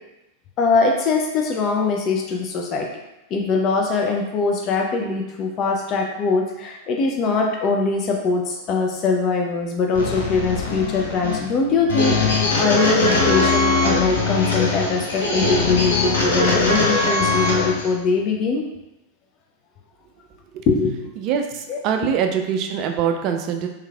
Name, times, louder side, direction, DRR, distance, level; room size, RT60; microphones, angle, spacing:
voice 1, 0.6-2.9 3.3-18.7 20.7-21.0 21.7-21.8, left 4 dB, 35° left, 1 dB, 0.4 m, -22 dB
sound 1, 9.9-17.9, left 3 dB, 65° left, 0.7 m, -21 dB
voice 2, 21.2-23.7, right 7 dB, 40° right, 5 dB, 0.3 m, -23 dB
3.2 x 3.1 x 2.3 m, 0.93 s
figure-of-eight pair, 90°, 0 cm